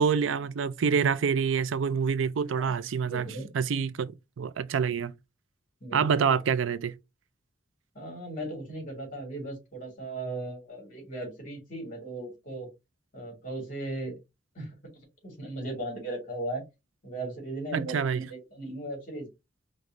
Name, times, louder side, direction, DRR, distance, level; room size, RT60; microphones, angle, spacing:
voice 1, 0.0-3.3 3.5-5.1 5.9-6.9 17.7-18.2, right 6 dB, 90° right, 0.4 m, -26 dB
voice 2, 3.0-3.5 5.8-6.4 7.9-12.7 13.1-14.2 14.5-14.9 15.2-16.6 17.0-19.3, right 1 dB, 45° left, 2.7 m, -37 dB
5.2 x 2.6 x 3.0 m
head